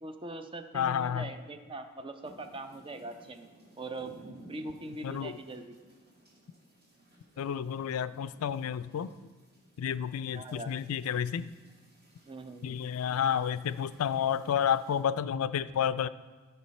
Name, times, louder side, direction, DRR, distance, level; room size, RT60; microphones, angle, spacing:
voice 1, 0.0-3.5 3.8-4.1 4.5-5.8 7.4-7.5 10.3-10.7 12.3-12.8, right 2 dB, 25° right, 8 dB, 0.5 m, -42 dB
voice 2, 0.7-1.3 5.0-5.3 7.4-9.1 9.8-11.5 12.6-16.1, left 8 dB, 80° left, 15 dB, 0.3 m, -30 dB
sound 1, 2.2-15.0, right 1 dB, 50° right, 2.1 m, -57 dB
13.0 x 5.6 x 4.2 m, 1.4 s
head